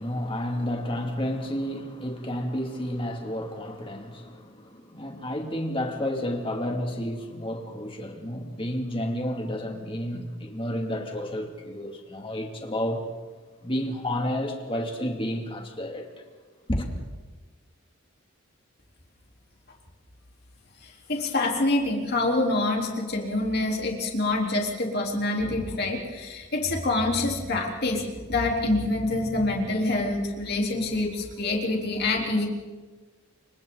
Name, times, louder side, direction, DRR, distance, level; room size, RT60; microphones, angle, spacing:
voice 1, 0.0-13.0 13.6-16.2 16.7-16.9, equal, 25° left, 2.6 m, -31 dB
voice 2, 20.8-32.5, left 2 dB, 50° left, 3.8 m, -26 dB
29.0 x 25.5 x 4.0 m
head